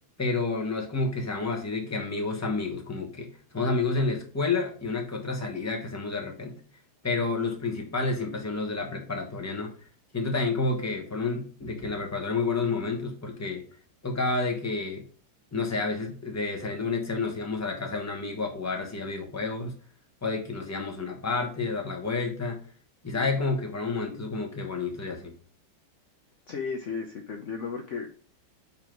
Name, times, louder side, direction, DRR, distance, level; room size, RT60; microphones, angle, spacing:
voice 1, 0.2-3.3 3.5-6.6 7.0-9.7 10.1-13.6 14.0-15.0 15.5-19.7 20.2-22.6 23.0-25.3, left 3 dB, 10° left, 1 dB, 0.9 m, -30 dB
voice 2, 26.5-28.1, left 5 dB, 75° left, 3 dB, 0.6 m, -34 dB
5.4 x 4.7 x 4.4 m, 0.43 s
omnidirectional pair, 2.2 m